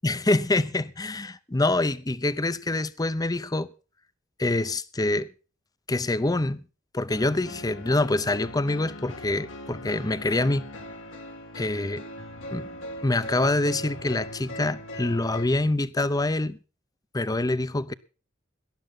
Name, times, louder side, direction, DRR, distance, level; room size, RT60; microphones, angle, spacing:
voice 1, 0.0-3.7 4.4-5.3 5.9-6.6 6.9-10.7 11.5-12.0 12.5-12.8 13.0-16.6 17.1-17.9, left 2 dB, 20° left, 0.7 m, -25 dB
sound 1, 7.1-15.5, left 1 dB, 85° left, 2.3 m, -40 dB
19.0 x 11.5 x 3.8 m
head